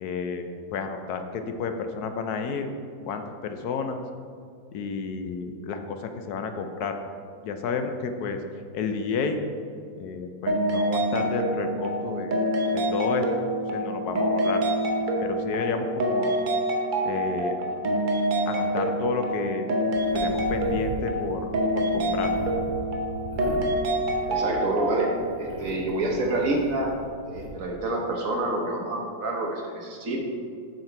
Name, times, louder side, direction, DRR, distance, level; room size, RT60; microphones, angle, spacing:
voice 1, 0.0-2.7 3.1-4.0 4.7-7.0 7.4-8.4 8.7-9.4 9.9-12.3 12.7-13.2 13.7-14.6 15.2-16.3 17.0-17.5 18.5-19.7 20.1-22.3, left 5 dB, 70° left, 6 dB, 0.9 m, -31 dB
sound 1, 10.5-25.2, right 1 dB, 90° right, 0.4 m, -26 dB
sound 2, 19.9-24.7 25.1-27.5, equal, 40° left, 1.2 m, -38 dB
voice 2, 24.3-25.1 25.4-26.9 27.2-30.2, right 2 dB, 55° right, -1 dB, 1.1 m, -27 dB
7.5 x 5.8 x 4.5 m, 2.2 s
omnidirectional pair, 2.1 m